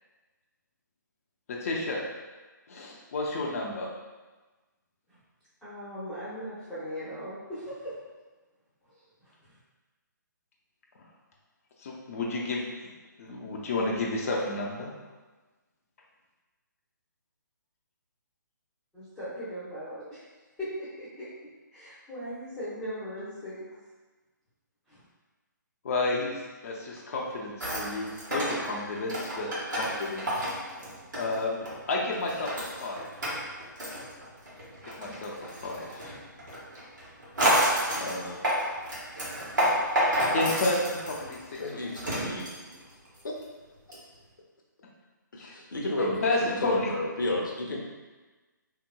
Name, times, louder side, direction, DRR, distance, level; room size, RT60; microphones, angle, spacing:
voice 1, 1.5-2.0 2.7-3.9 11.8-12.7 13.2-14.9 25.8-30.5 31.1-33.1 35.0-36.2 38.0-38.4 40.3-41.8 45.4-45.6 46.0-46.9, left 2 dB, 45° left, -2 dB, 0.6 m, -31 dB
voice 2, 5.6-8.0 8.9-9.3 18.9-20.2 20.6-21.3 21.7-23.6 24.9-25.0, equal, 5° left, -14 dB, 0.9 m, -39 dB
sound 1, 27.6-31.8 32.1-43.4 43.9-44.0, equal, 70° right, 1.3 m, -30 dB
voice 3, 41.6-42.5 43.2-43.3 43.9-44.0 45.3-47.8, left 2 dB, 75° left, -1 dB, 0.8 m, -32 dB
3.5 x 2.9 x 2.2 m, 1.2 s
figure-of-eight pair, 140°, 11 cm